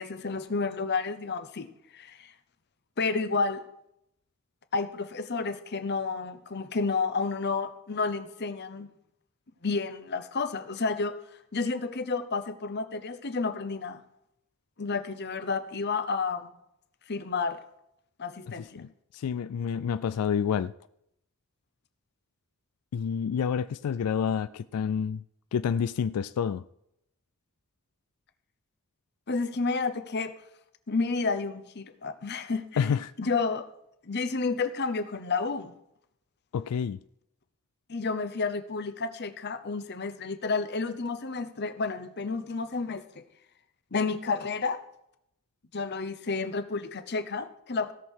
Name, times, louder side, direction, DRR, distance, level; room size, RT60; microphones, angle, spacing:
voice 1, 0.0-2.3 3.0-3.6 4.7-8.9 9.6-11.2 11.5-14.0 14.8-16.5 17.1-17.6 18.2-18.8 29.3-30.3 30.9-32.9 33.2-33.7 34.0-35.7 37.9-43.2 43.9-44.8 45.7-47.9, left 4 dB, 50° left, 0.8 m, -31 dB
voice 2, 18.6-18.9 19.1-20.7 22.9-25.2 25.5-26.6 32.8-33.1 36.5-37.0, left 7 dB, 90° left, 0.3 m, -28 dB
17.0 x 6.5 x 4.5 m
head